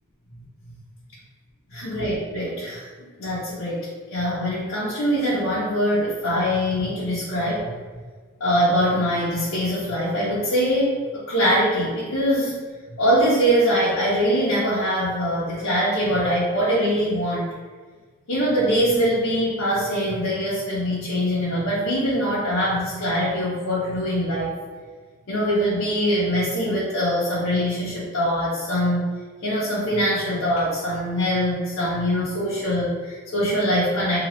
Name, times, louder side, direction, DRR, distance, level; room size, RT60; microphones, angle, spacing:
voice 1, 1.7-2.8 3.2-7.7 8.4-12.6 13.0-17.5 18.3-24.6 25.3-29.1 29.4-34.2, equal, 80° left, -8 dB, 0.7 m, -23 dB
2.9 x 2.4 x 3.0 m, 1.5 s
head